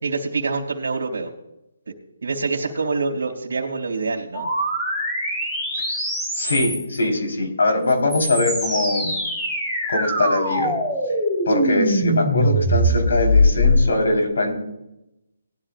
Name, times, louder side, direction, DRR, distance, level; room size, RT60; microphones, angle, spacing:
voice 1, 0.0-1.3 2.2-4.5, right 4 dB, 80° right, 0 dB, 2.4 m, -25 dB
sound 1, 4.3-7.0 7.9-13.8, equal, 5° left, 5.6 m, -22 dB
voice 2, 6.4-9.1 9.9-10.7 11.5-14.5, left 2 dB, 75° left, 3 dB, 4.0 m, -21 dB
19.0 x 11.5 x 2.5 m, 0.89 s
hypercardioid pair, 170°, 0 cm